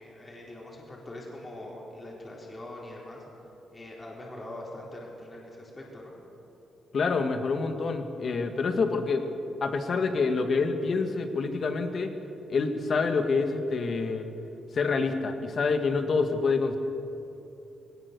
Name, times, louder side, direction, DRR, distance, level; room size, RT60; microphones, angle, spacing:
voice 1, 0.0-3.2 3.7-6.1, left 1 dB, 25° left, -3 dB, 4.1 m, -43 dB
voice 2, 6.9-9.3 9.6-12.1 12.5-14.3 14.7-16.8, left 4 dB, 50° left, 6 dB, 1.8 m, -27 dB
20.0 x 19.0 x 6.9 m, 2.9 s
cardioid pair, 100°, 0 cm